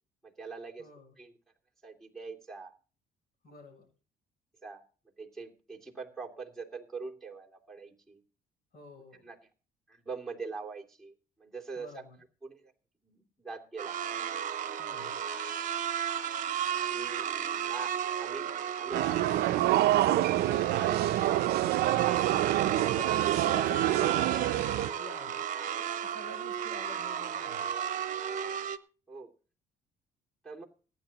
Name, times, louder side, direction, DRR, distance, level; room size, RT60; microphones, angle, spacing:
voice 1, 0.2-0.9 1.2-1.3 1.8-2.7 4.6-4.8 5.2-8.2 9.2-9.4 9.9-12.0 12.4-12.7 13.0-14.0 14.9-15.1 16.9-17.3 17.6-18.5 18.8-22.0 29.1-29.3 30.4-30.6, right 4 dB, ahead, -3 dB, 2.7 m, -43 dB
voice 2, 0.8-1.2 3.4-3.9 8.7-9.3 11.8-12.2 14.8-15.1 22.6-25.4 26.0-27.7, left 2 dB, 65° left, 5 dB, 7.5 m, -47 dB
sound 1, 13.8-28.8, right 9 dB, 50° right, 1.0 m, -34 dB
sound 2, 18.9-24.9, right 15 dB, 75° right, 0.5 m, -27 dB
24.5 x 9.7 x 2.9 m, 0.38 s
cardioid pair, 110°, 17 cm